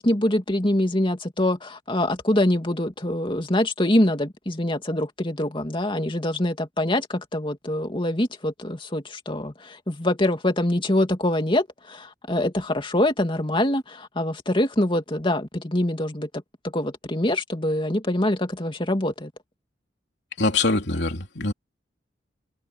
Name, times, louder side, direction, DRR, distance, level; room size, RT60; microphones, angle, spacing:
voice 1, 0.0-16.3 16.6-19.3, left 1 dB, 30° left, 2.6 m, -24 dB
voice 2, 20.4-21.5, left 3 dB, 65° left, 3.7 m, -23 dB
head